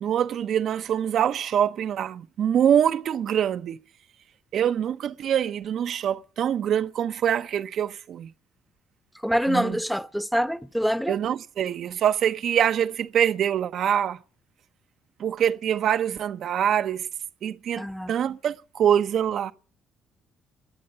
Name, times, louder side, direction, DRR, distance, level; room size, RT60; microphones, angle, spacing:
voice 1, 0.0-3.8 4.5-8.3 9.5-9.8 11.1-14.2 15.2-17.1 17.4-19.5, right 9 dB, 65° right, 0.7 m, -24 dB
voice 2, 9.2-11.2 17.8-18.1, equal, ahead, 1.0 m, -25 dB
22.0 x 8.6 x 6.7 m
hypercardioid pair, 60°, 0 cm